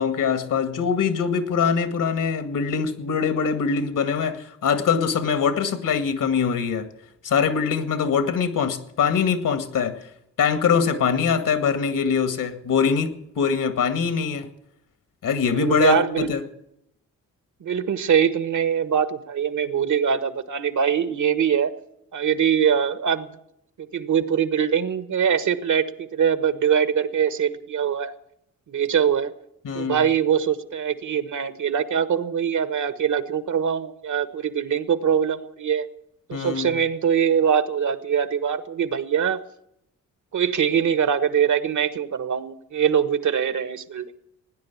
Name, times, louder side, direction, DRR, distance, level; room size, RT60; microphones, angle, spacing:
voice 1, 0.0-6.9 7.2-10.0 10.4-14.5 15.2-16.4 29.6-30.0 36.3-36.7, left 6 dB, 70° left, 10 dB, 2.1 m, -23 dB
voice 2, 15.5-16.3 17.6-21.7 22.1-23.4 23.8-28.1 28.7-29.3 29.7-35.9 36.3-39.4 40.3-44.1, right 8 dB, 60° right, 13 dB, 1.4 m, -23 dB
17.5 x 10.0 x 8.3 m, 0.78 s
cardioid pair, 65°, 33 cm